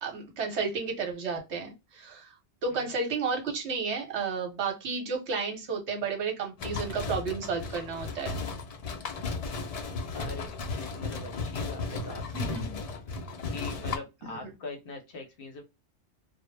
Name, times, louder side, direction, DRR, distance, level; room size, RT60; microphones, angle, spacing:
voice 1, 0.0-2.3 2.6-8.4 12.3-12.8 14.3-14.4, right 5 dB, 70° right, 3 dB, 1.0 m, -32 dB
sound 1, 6.6-14.0, left 3 dB, 75° left, 0.3 m, -35 dB
voice 2, 10.1-12.5 13.5-15.6, left 3 dB, 60° left, 3 dB, 0.7 m, -42 dB
2.1 x 2.0 x 3.1 m, 0.25 s
omnidirectional pair, 1.2 m